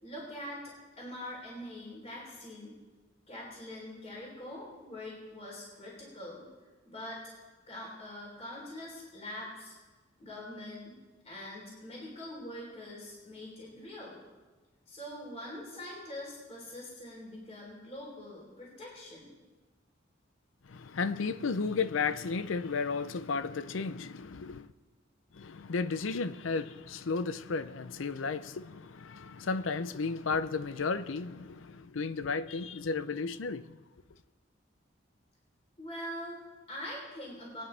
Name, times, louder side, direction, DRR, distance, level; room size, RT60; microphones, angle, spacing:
voice 1, 0.0-2.8 3.3-6.4 6.8-7.4 7.7-9.7 10.2-11.0 11.2-14.2 14.9-19.3 35.8-37.6, left 1 dB, 35° left, 3.7 m, -43 dB
voice 2, 20.6-24.7 25.3-33.8, left 4 dB, 85° left, 0.6 m, -33 dB
22.0 x 9.4 x 3.4 m
head